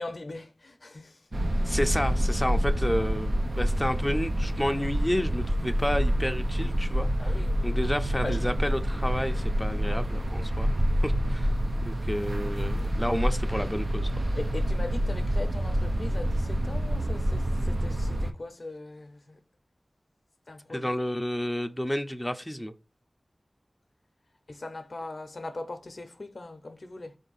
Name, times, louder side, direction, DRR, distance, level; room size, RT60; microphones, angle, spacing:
voice 1, 0.0-1.7 7.2-7.6 8.2-8.6 13.7-13.8 14.3-19.4 20.5-20.9 24.5-27.2, left 2 dB, 65° left, 0.6 m, -40 dB
sound 1, 1.3-18.3, equal, 60° right, 0.6 m, -27 dB
voice 2, 1.7-7.1 7.6-10.7 11.0-11.5 11.8-14.1 20.7-22.7, equal, 10° left, 0.5 m, -30 dB
4.3 x 2.7 x 3.9 m
wide cardioid pair, 50°, 0 cm